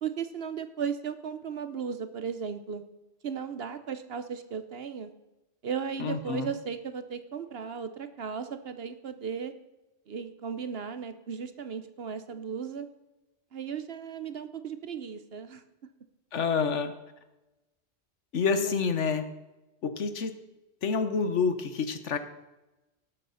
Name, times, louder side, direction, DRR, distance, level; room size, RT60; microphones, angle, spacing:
voice 1, 0.0-2.8 3.2-5.1 5.6-9.5 10.1-12.9 13.5-15.6 18.5-18.9, right 6 dB, 55° right, 10 dB, 1.1 m, -36 dB
voice 2, 6.0-6.5 16.3-16.9 18.3-19.3 19.8-20.3 20.8-22.2, left 5 dB, 75° left, 10 dB, 1.4 m, -28 dB
18.5 x 7.7 x 5.6 m, 1.0 s
omnidirectional pair, 1.2 m